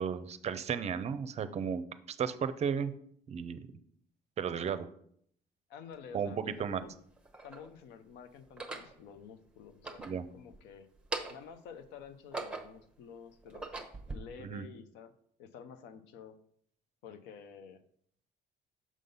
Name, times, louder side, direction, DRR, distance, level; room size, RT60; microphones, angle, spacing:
voice 1, 0.0-1.8 2.1-2.9 3.3-3.6 4.4-4.9 6.1-6.8 10.0-10.2 14.4-14.6, right 7 dB, 40° right, 13 dB, 0.5 m, -34 dB
voice 2, 5.7-6.9 7.4-10.9 11.3-13.7 14.1-15.1 15.4-16.4 17.0-17.8, left 7 dB, 90° left, 10 dB, 0.6 m, -50 dB
sound 1, 5.9-6.0 6.9-7.7 8.4-8.9 9.7-10.6 10.9-11.6 12.0-12.9 13.4-14.2, right 3 dB, 5° right, 0.8 m, -41 dB
6.2 x 3.9 x 5.3 m, 0.66 s
cardioid pair, 110°, 17 cm